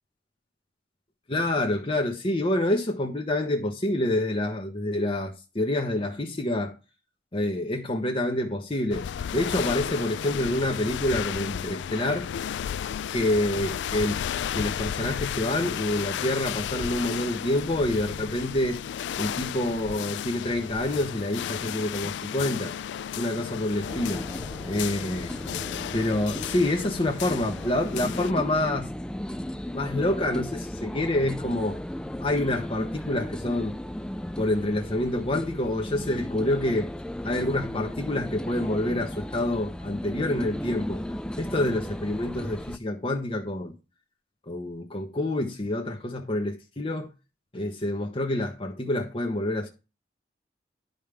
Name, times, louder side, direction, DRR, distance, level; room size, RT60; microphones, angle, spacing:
voice 1, 1.3-6.7 7.3-12.3 13.1-14.2 14.5-18.8 19.2-22.7 23.1-24.3 24.7-25.3 25.9-28.9 29.7-31.8 32.2-33.8 34.4-36.9 37.2-41.0 41.4-43.7 44.5-47.1 47.5-49.7, left 1 dB, 30° left, 1.0 m, -27 dB
sound 1, 8.9-28.3, left 9 dB, 85° left, 0.3 m, -33 dB
sound 2, 23.9-42.8, left 1 dB, 5° left, 0.3 m, -35 dB
11.0 x 5.3 x 3.4 m
head